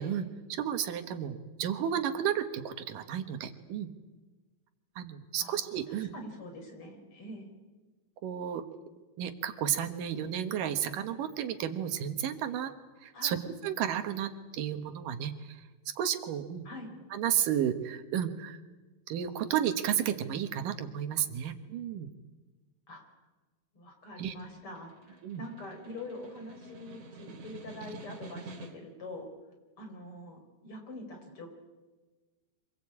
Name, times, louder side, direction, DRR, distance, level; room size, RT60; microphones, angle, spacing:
voice 1, 0.0-3.9 5.0-6.1 8.2-8.6 9.2-12.7 13.0-15.6 15.9-16.7 17.1-18.6 19.1-22.1 24.2-24.3 25.2-25.4, right 9 dB, 80° right, 8 dB, 3.0 m, -32 dB
voice 2, 5.4-7.5 13.1-13.4 16.7-16.9 22.9-23.1 23.7-29.3 29.8-31.5, left 1 dB, 40° left, 3 dB, 5.3 m, -45 dB
Snare drum, 24.1-29.0, right 2 dB, 65° right, 3.8 m, -49 dB
26.0 x 19.0 x 8.7 m, 1.2 s
omnidirectional pair, 3.8 m